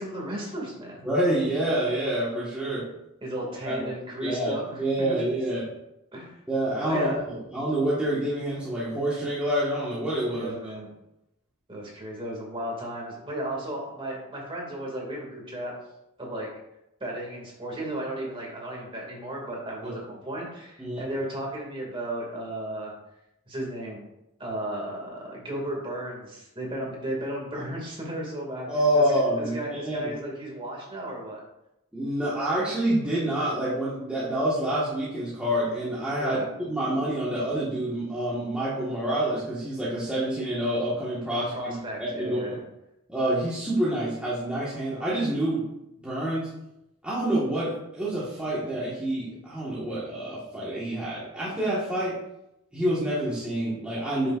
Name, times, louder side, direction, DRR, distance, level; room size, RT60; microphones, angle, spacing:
voice 1, 0.0-1.0 3.2-5.2 6.1-6.4 6.8-7.2 10.3-10.9 11.7-15.7 16.2-16.5 17.0-22.9 23.5-24.0 24.4-28.7 28.9-29.0 29.4-31.4 36.2-36.5 41.3-42.6, right 1 dB, 25° right, -2 dB, 2.3 m, -34 dB
voice 2, 1.0-2.9 3.6-3.8 4.2-5.7 6.5-10.7 19.8-20.0 20.8-21.1 28.7-30.1 31.9-42.6 43.1-45.6 46.0-46.5 47.0-52.1 52.7-54.3, right 1 dB, 5° right, -9 dB, 1.6 m, -27 dB
9.5 x 6.7 x 2.6 m, 0.86 s
head